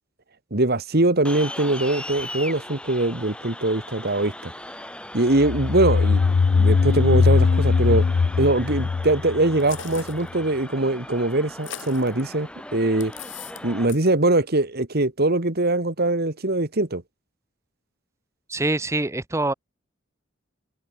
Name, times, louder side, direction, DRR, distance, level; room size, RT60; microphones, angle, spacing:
voice 1, 0.5-4.5 5.1-6.2 6.5-8.1 8.4-13.1 13.6-17.0, right 2 dB, 50° right, 2.0 m, -22 dB
sound 1, 1.3-13.9, left 1 dB, 5° left, 3.5 m, -39 dB
sound 2, 5.4-10.0, left 4 dB, 45° left, 0.3 m, -20 dB
sound 3, 9.6-10.3 11.5-12.2 13.0-13.6 13.9-14.1, left 8 dB, 65° left, 3.1 m, -39 dB
voice 2, 18.5-19.5, right 2 dB, 15° right, 0.9 m, -24 dB
head